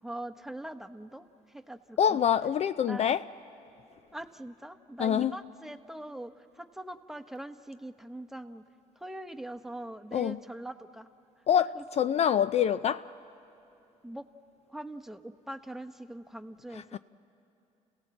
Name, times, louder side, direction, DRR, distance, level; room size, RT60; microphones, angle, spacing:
voice 1, 0.0-2.2 2.8-3.2 4.1-8.6 9.0-11.1 11.6-11.8 14.0-14.3 14.7-17.0, right 1 dB, ahead, 1.0 m, -42 dB
voice 2, 2.0-3.2 5.0-5.3 10.1-10.4 11.5-13.1 16.9-17.0, left 9 dB, 45° left, 0.4 m, -25 dB
30.0 x 16.5 x 7.6 m
supercardioid pair, 75°, 15 cm